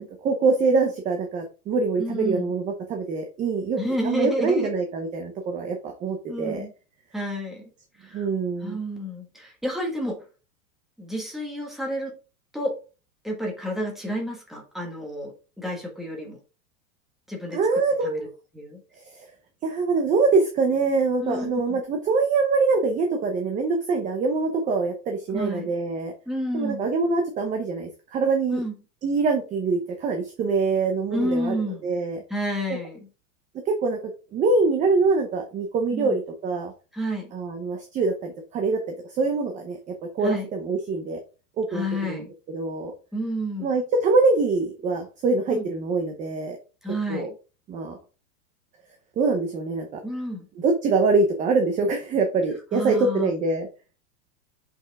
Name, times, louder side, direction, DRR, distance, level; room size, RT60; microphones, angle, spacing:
voice 1, 0.0-3.8 4.0-6.6 8.1-8.8 17.5-18.3 19.1-19.3 19.6-26.1 26.5-28.6 29.0-31.5 31.8-32.2 33.7-34.0 34.3-36.7 37.3-41.2 41.6-42.9 43.6-46.6 47.1-47.3 47.7-48.0 49.2-50.0 50.6-53.7, right 3 dB, 15° right, 4 dB, 0.8 m, -24 dB
voice 2, 2.0-2.5 3.8-4.7 6.3-6.7 7.1-7.6 8.0-8.3 8.6-10.2 11.0-12.1 12.5-12.7 13.2-16.4 17.3-17.6 18.0-18.3 18.5-18.8 21.2-21.8 25.3-25.7 26.3-26.9 28.5-28.7 31.1-31.9 32.3-33.0 35.9-36.2 36.9-37.3 40.2-40.5 41.7-42.3 43.1-43.8 45.5-45.7 46.8-47.3 50.0-50.5 52.7-53.3, equal, ahead, -1 dB, 1.7 m, -30 dB
6.3 x 5.6 x 3.6 m, 0.32 s
supercardioid pair, 165°, 45 cm